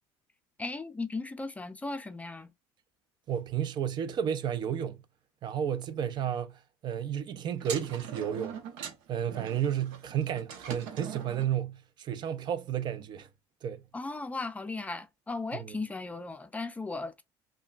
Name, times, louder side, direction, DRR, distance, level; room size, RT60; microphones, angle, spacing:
voice 1, 0.6-2.5 13.9-17.2, left 3 dB, 15° left, 0.4 m, -36 dB
voice 2, 3.3-5.0 5.4-8.6 9.1-13.3 13.6-13.8 15.5-15.8, right 9 dB, 45° right, 0.5 m, -32 dB
sound 1, 7.6-11.5, right 8 dB, 85° right, 0.8 m, -41 dB
5.6 x 2.2 x 2.3 m
supercardioid pair, 105°, 10 cm